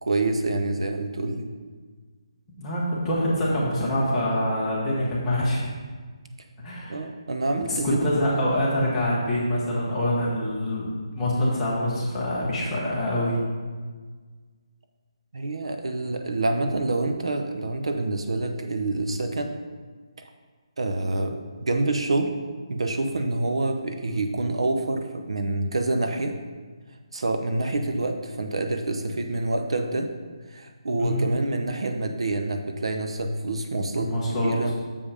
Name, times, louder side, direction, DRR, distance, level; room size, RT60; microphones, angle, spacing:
voice 1, 0.0-1.5 6.9-8.1 15.3-19.6 20.2-20.3 20.8-22.4 22.7-26.4 27.1-30.1 30.5-34.1 34.4-34.7, right 2 dB, 65° right, 5 dB, 0.7 m, -27 dB
voice 2, 2.6-5.7 6.6-7.0 7.7-13.4 31.0-31.3 33.9-34.5, left 1 dB, 5° left, -8 dB, 1.0 m, -25 dB
7.0 x 5.3 x 4.9 m, 1.5 s
hypercardioid pair, 180°, 3 cm